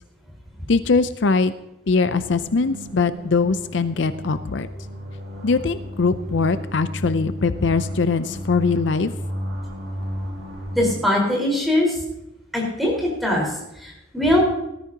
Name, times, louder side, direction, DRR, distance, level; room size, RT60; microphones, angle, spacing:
voice 1, 0.7-1.5 1.9-4.7 5.4-9.1, left 4 dB, 75° left, 12 dB, 0.6 m, -21 dB
sound 1, 2.1-10.9, equal, 70° right, 2.0 m, -33 dB
voice 2, 10.7-12.0 12.5-14.4, left 1 dB, ahead, -3 dB, 4.5 m, -21 dB
18.0 x 13.5 x 2.9 m, 0.86 s
head